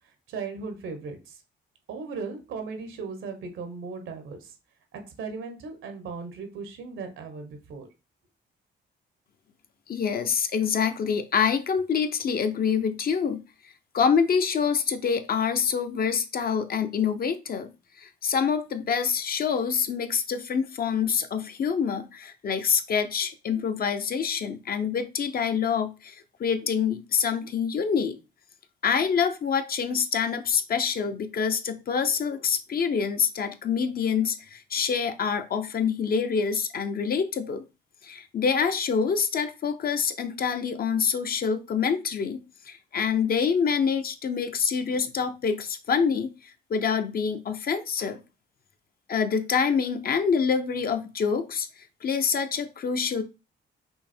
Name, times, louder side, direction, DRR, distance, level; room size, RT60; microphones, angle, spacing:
voice 1, 0.3-1.4 1.9-4.5 4.9-7.9, right 4 dB, 80° right, 1.1 m, -37 dB
voice 2, 9.9-13.4 13.9-17.7 18.0-26.1 26.4-28.2 28.8-37.6 38.0-46.3 46.7-48.2 49.1-51.7 52.0-53.2, left 6 dB, 50° left, 0.7 m, -26 dB
5.6 x 2.1 x 4.3 m
cardioid pair, 90°, 20 cm